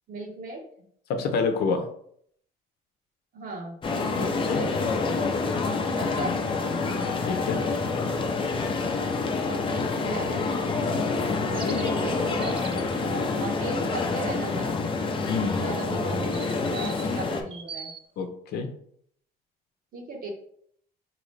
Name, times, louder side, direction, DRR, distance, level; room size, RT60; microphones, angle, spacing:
voice 1, 0.1-0.6 3.3-3.8 4.2-4.7 5.9-6.4 9.4-10.5 11.5-14.8 15.6-17.9 19.9-20.3, right 2 dB, 60° right, 0 dB, 1.2 m, -36 dB
voice 2, 1.1-1.8 4.1-4.6 6.0-6.1 7.3-7.6 11.2-11.8 15.3-15.6 18.2-18.7, left 4 dB, 75° left, 6 dB, 0.7 m, -28 dB
sound 1, 3.8-17.4, left 3 dB, 30° left, 0.6 m, -27 dB
sound 2, 11.5-12.9 16.1-18.0, right 5 dB, 30° right, 0.5 m, -41 dB
3.9 x 3.0 x 3.2 m, 0.66 s
cardioid pair, 110°, 17 cm